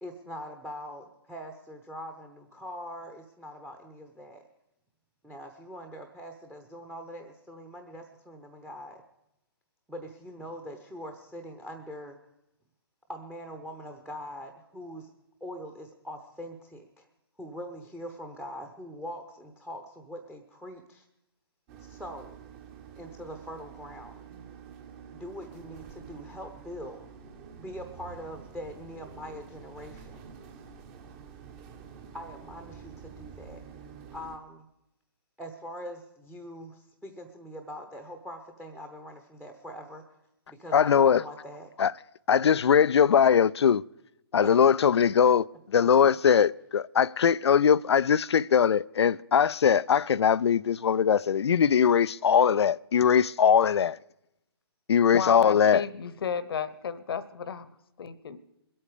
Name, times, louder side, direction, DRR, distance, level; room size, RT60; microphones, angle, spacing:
voice 1, 0.0-4.4 5.2-9.0 9.9-12.2 13.1-15.1 15.4-17.1 17.4-21.1 21.8-22.4 23.0-24.2 25.1-27.0 27.6-30.2 32.1-33.6 34.1-34.7 35.4-40.0 40.5-41.7 44.4-44.7 45.8-46.2, equal, 5° right, 0.9 m, -42 dB
sound 1, 21.7-34.4, right 6 dB, 30° right, 1.3 m, -48 dB
voice 2, 40.7-41.2 41.8-41.9 42.3-43.8 44.3-54.0 54.9-55.8, left 7 dB, 80° left, 0.4 m, -21 dB
voice 3, 55.1-58.4, left 6 dB, 60° left, 1.0 m, -33 dB
22.0 x 8.6 x 5.0 m
hypercardioid pair, 140°, 14 cm